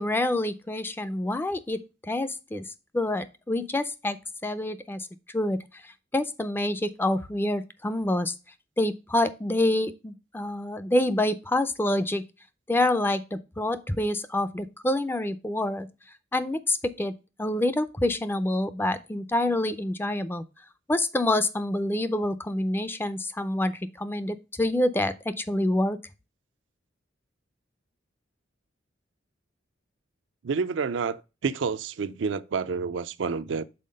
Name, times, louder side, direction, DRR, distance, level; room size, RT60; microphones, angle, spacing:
voice 1, 0.0-1.8 2.1-2.6 2.9-4.2 4.4-5.1 5.3-5.6 5.8-8.3 8.8-12.2 12.7-15.9 16.3-17.1 17.4-20.4 20.9-26.0, left 1 dB, 10° left, 0.4 m, -27 dB
voice 2, 30.4-33.6, right 5 dB, 70° right, 0.4 m, -29 dB
5.6 x 4.1 x 5.1 m
head